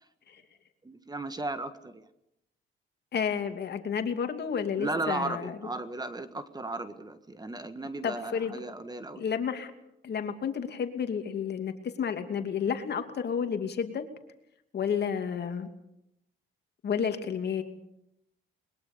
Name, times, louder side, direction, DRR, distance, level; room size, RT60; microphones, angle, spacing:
voice 1, 0.8-2.0 4.8-9.2, right 2 dB, 20° right, 10 dB, 1.6 m, -35 dB
voice 2, 3.1-5.5 8.0-8.6 9.2-9.7 10.0-14.0 14.7-15.7 16.8-17.6, left 7 dB, 55° left, 6 dB, 2.8 m, -31 dB
22.0 x 21.5 x 7.0 m, 0.82 s
cardioid pair, 90°, 20 cm